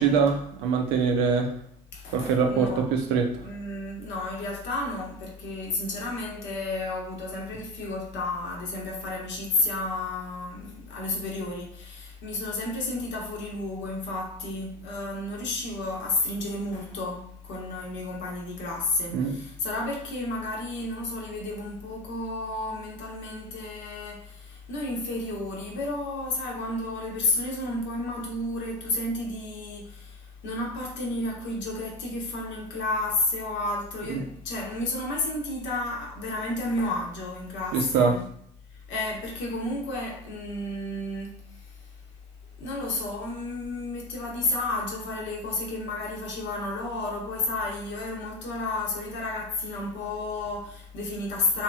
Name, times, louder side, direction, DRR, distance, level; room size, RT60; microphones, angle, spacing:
voice 1, 0.0-1.5 2.1-3.5 19.1-19.4 34.1-34.2 37.7-38.1, right 5 dB, 70° right, 0.5 m, -24 dB
voice 2, 1.9-2.8 3.4-38.2 38.7-41.9 42.6-51.6, left 2 dB, 60° left, 0.9 m, -31 dB
2.8 x 2.6 x 2.2 m
hypercardioid pair, 50°, 21 cm